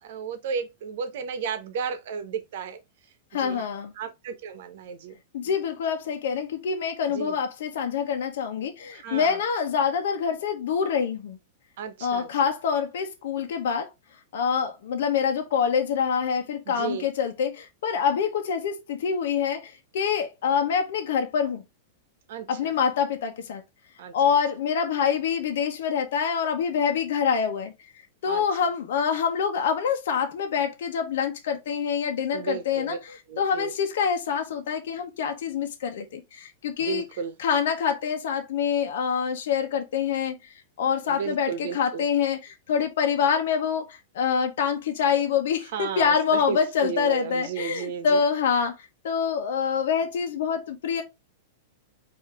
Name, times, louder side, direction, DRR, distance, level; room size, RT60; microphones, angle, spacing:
voice 1, 0.0-2.8 3.3-3.7 4.0-5.2 7.1-7.3 8.9-9.4 11.8-12.3 16.7-17.1 22.3-22.7 24.0-24.1 28.3-28.4 32.3-33.0 33.3-33.7 36.8-37.3 41.0-42.0 45.7-48.2, right 6 dB, 60° right, 1.0 m, -33 dB
voice 2, 3.3-3.9 5.3-11.4 12.0-13.9 14.3-21.6 22.5-23.6 24.1-27.7 28.2-37.0 37.4-51.0, left 7 dB, 70° left, 0.9 m, -26 dB
4.7 x 2.8 x 3.5 m
supercardioid pair, 155°, 0 cm